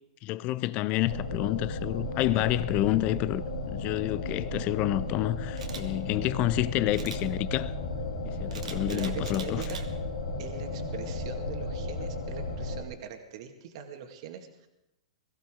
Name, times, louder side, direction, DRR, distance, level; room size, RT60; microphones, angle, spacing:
voice 1, 0.2-7.7 8.2-9.6, left 15 dB, 40° left, 0.6 m, -29 dB
sound 1, 1.1-12.8, left 2 dB, 90° left, 2.8 m, -34 dB
Camera, 5.6-5.8 6.9-7.2 8.5-9.8 10.3-10.6, right 6 dB, 85° right, 1.8 m, -42 dB
voice 2, 8.6-9.9 10.4-14.7, right 8 dB, 55° right, 2.0 m, -42 dB
22.0 x 15.0 x 3.8 m
hypercardioid pair, 120°, 4 cm